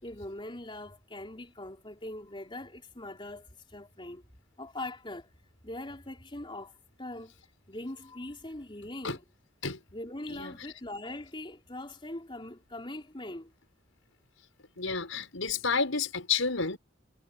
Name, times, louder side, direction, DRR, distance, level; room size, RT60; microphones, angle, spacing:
voice 1, 0.0-4.2 4.6-5.3 5.6-6.7 7.0-7.3 7.7-9.2 9.9-13.5, left 1 dB, 25° left, 3.9 m, -41 dB
voice 2, 14.8-16.8, left 5 dB, 85° left, 5.6 m, -30 dB
head